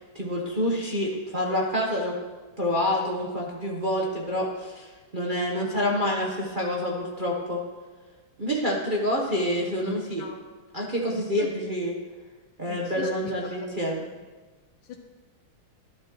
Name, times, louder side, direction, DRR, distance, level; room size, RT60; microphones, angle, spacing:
voice 1, 0.0-2.2 2.6-7.6 8.4-10.2 10.7-11.9 12.6-14.0, equal, 35° right, -3 dB, 0.8 m, -27 dB
voice 2, 9.9-10.4 11.1-11.5 12.7-13.1 14.9-15.0, left 7 dB, 85° left, 3 dB, 1.7 m, -39 dB
12.0 x 11.5 x 3.0 m, 1.3 s
omnidirectional pair, 2.3 m